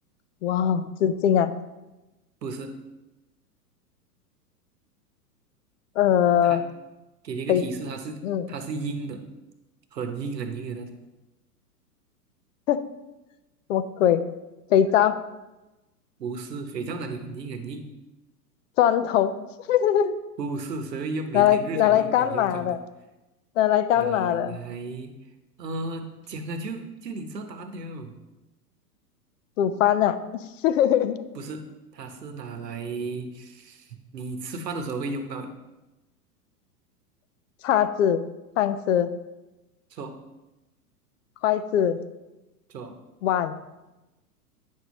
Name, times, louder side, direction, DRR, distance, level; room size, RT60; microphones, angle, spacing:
voice 1, 0.4-1.6 6.0-6.6 7.5-7.6 8.2-8.5 12.7-12.8 13.7-14.3 14.7-15.2 18.8-19.3 19.7-20.2 21.3-22.8 23.6-24.6 29.6-30.2 30.6-31.2 37.6-38.2 38.6-39.1 41.4-42.0 43.2-43.6, left 10 dB, 55° left, 13 dB, 0.6 m, -21 dB
voice 2, 2.4-2.8 6.4-6.6 7.2-9.2 9.9-11.0 16.2-17.9 20.4-22.8 23.9-25.1 25.6-28.2 31.3-35.5 39.9-40.2 42.7-43.0, right 3 dB, 85° right, 7 dB, 1.1 m, -34 dB
9.0 x 6.4 x 3.1 m, 1.0 s
hypercardioid pair, 110°, 48 cm